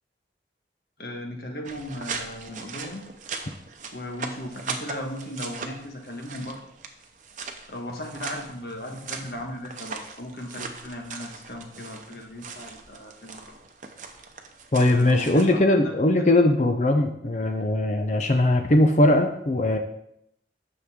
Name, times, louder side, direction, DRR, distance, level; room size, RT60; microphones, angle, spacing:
voice 1, 1.0-3.0 3.9-6.6 7.7-13.5 14.8-15.9, left 1 dB, 60° left, 2 dB, 1.5 m, -37 dB
sound 1, 1.6-15.5, right 5 dB, 45° right, 0.8 m, -39 dB
voice 2, 14.7-19.8, left 1 dB, 40° left, 4 dB, 0.6 m, -20 dB
9.6 x 6.5 x 3.6 m, 0.76 s
head